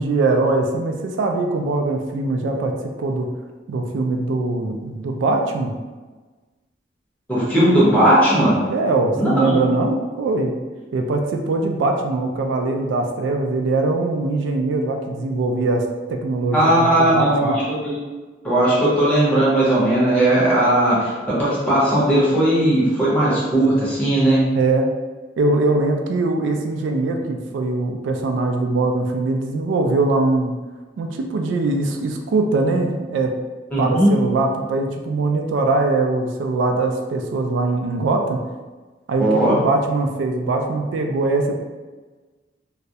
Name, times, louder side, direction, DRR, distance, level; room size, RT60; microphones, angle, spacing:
voice 1, 0.0-3.3 3.7-5.7 8.7-10.5 10.9-17.5 24.6-24.9 25.4-30.5 31.0-33.3 33.8-38.4 39.1-41.5, right 3 dB, 90° right, 3 dB, 0.3 m, -21 dB
voice 2, 7.3-8.6 9.2-9.6 16.5-17.5 17.8-18.0 18.4-21.1 21.4-24.4 33.7-34.1 39.2-39.6, right 1 dB, 5° left, -9 dB, 0.8 m, -17 dB
2.3 x 2.0 x 2.7 m, 1.3 s
head